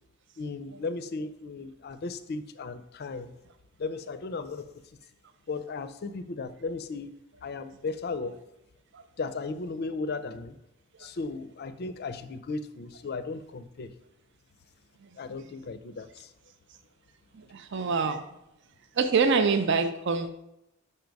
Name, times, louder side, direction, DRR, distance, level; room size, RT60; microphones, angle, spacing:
voice 1, 0.4-3.3 3.8-4.8 5.5-7.1 7.4-8.4 9.2-10.6 11.0-13.9 15.2-16.3, left 3 dB, 50° left, 12 dB, 0.4 m, -36 dB
voice 2, 17.3-18.2 18.9-20.3, right 5 dB, 55° right, 8 dB, 0.5 m, -26 dB
5.6 x 4.6 x 5.2 m, 0.83 s
head